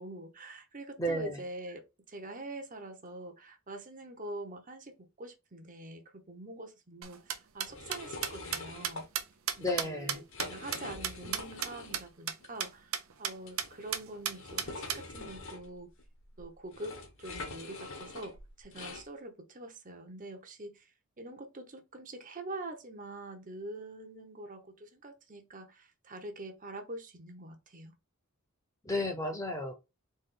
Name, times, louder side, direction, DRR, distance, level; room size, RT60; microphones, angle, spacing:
voice 1, 0.0-9.1 9.6-15.9 16.4-20.9 21.2-27.9, right 2 dB, 35° right, 0.9 m, -45 dB
voice 2, 1.0-1.4 9.6-10.2 28.8-29.7, left 1 dB, 15° left, 0.9 m, -33 dB
sound 1, 7.0-11.7 11.9-12.0 12.3-12.4 12.6-12.7 12.9-13.3 13.6-13.7 13.9-15.0, right 9 dB, 70° right, 0.8 m, -33 dB
sound 2, 7.7-9.1 9.5-9.8 10.2-12.1 12.4-12.5 13.4-19.1, left 3 dB, 60° left, 1.3 m, -44 dB
4.2 x 3.0 x 3.8 m
head